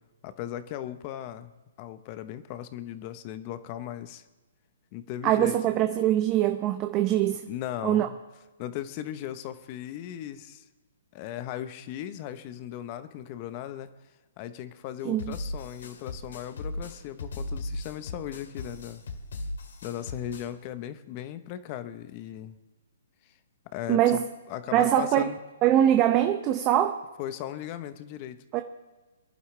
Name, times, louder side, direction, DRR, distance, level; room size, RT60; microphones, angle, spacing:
voice 1, 0.2-4.2 4.9-5.6 7.5-8.2 8.6-10.6 11.1-13.9 14.4-19.0 19.8-22.6 23.7-25.4 27.2-28.4, left 11 dB, 35° left, 11 dB, 1.0 m, -37 dB
voice 2, 5.2-7.4 7.8-8.1 15.0-15.3 23.9-24.2 24.7-25.3 25.6-27.0 28.5-28.6, right 12 dB, 25° right, 7 dB, 0.7 m, -23 dB
sound 1, 15.2-20.5, left 2 dB, 70° left, 2.2 m, -37 dB
24.5 x 11.5 x 3.3 m, 1.2 s
hypercardioid pair, 145°, 0 cm